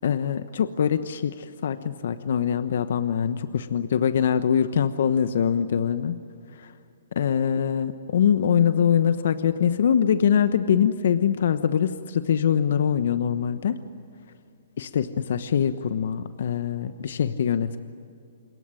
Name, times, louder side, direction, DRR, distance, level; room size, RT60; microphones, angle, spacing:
voice 1, 0.0-6.2 6.5-6.7 7.2-13.8 14.8-17.8, left 8 dB, 65° left, 11 dB, 1.1 m, -23 dB
27.5 x 21.5 x 10.0 m, 2.5 s
hypercardioid pair, 140°, 0 cm